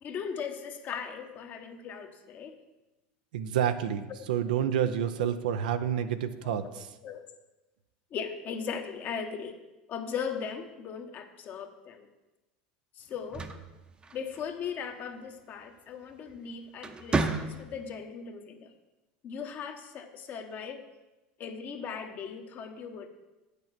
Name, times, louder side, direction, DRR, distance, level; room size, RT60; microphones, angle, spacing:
voice 1, 0.0-2.6 6.4-6.7 7.0-7.2 8.1-9.6 9.9-12.1 12.9-13.5 14.1-18.7 19.2-20.8 21.4-23.1, left 6 dB, 45° left, 6 dB, 1.1 m, -38 dB
voice 2, 3.3-6.9, right 9 dB, 85° right, 10 dB, 0.6 m, -29 dB
sound 1, 13.1-14.7 16.1-16.4 16.8-17.9, right 3 dB, 20° right, 0.8 m, -32 dB
8.6 x 6.8 x 5.9 m, 1.1 s
hypercardioid pair, 95°, 4 cm